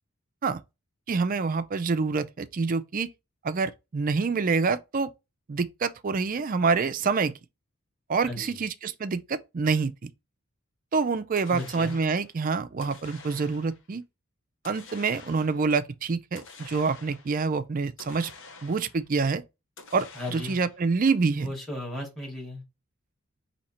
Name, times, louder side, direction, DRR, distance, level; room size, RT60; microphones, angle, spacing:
voice 1, 1.1-3.1 3.4-5.1 5.5-7.3 8.1-9.9 10.9-14.0 14.6-18.3 18.6-19.4 19.9-21.5, right 4 dB, 40° right, 0.4 m, -26 dB
voice 2, 8.2-8.6 11.5-11.9 20.2-20.6 21.4-22.6, left 1 dB, ahead, 2.2 m, -36 dB
sound 1, 11.4-12.3 12.8-13.9 14.6-15.7 16.4-17.4 18.0-19.1 19.8-20.9, left 4 dB, 55° left, 0.9 m, -48 dB
4.2 x 2.8 x 4.2 m
head